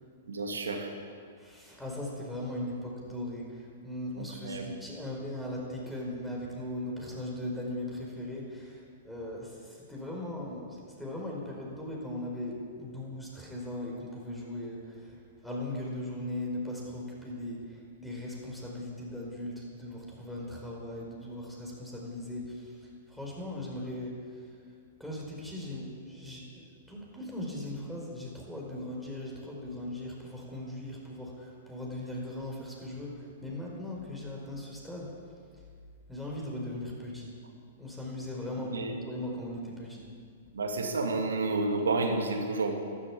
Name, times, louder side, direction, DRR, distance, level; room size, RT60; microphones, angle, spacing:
voice 1, 0.3-0.9 4.2-4.7 38.7-38.9 40.5-42.8, right 3 dB, 90° right, 3 dB, 2.5 m, -30 dB
voice 2, 1.4-22.7 23.1-24.2 25.0-35.1 36.1-37.3 37.8-40.1, left 1 dB, ahead, -3 dB, 4.8 m, -39 dB
13.0 x 12.5 x 8.6 m, 2.1 s
hypercardioid pair, 125°, 0 cm